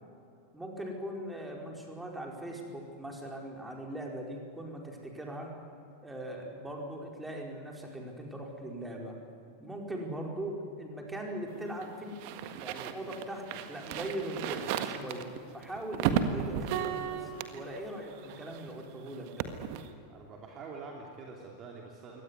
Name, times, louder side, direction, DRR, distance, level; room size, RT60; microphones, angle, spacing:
voice 1, 0.5-5.5 6.0-9.2 9.6-12.2 12.6-19.5, right 1 dB, 5° right, 0 dB, 4.9 m, -40 dB
sound 1, 11.5-18.8 19.1-19.9, right 10 dB, 45° right, 1.7 m, -35 dB
voice 2, 20.1-22.2, right 4 dB, 30° right, 0 dB, 3.0 m, -46 dB
23.5 x 18.5 x 9.6 m, 2.6 s
figure-of-eight pair, 90°, 0 cm